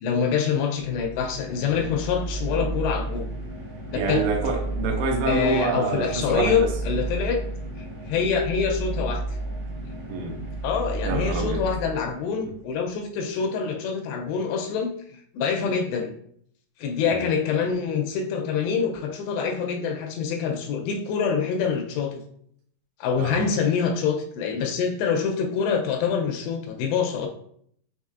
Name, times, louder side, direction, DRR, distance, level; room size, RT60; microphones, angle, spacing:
voice 1, 0.0-3.3 3.9-4.3 5.3-7.4 8.1-9.2 10.6-16.1 16.8-22.2 23.0-27.3, left 6 dB, 85° left, 3 dB, 2.6 m, -25 dB
sound 1, 0.8-12.6, right 2 dB, 65° right, 2.4 m, -32 dB
voice 2, 3.9-6.7 10.1-10.3 11.1-11.6 17.1-17.2 23.2-23.4, right 3 dB, 80° right, 0 dB, 2.5 m, -26 dB
6.5 x 3.0 x 2.3 m, 0.65 s
omnidirectional pair, 5.0 m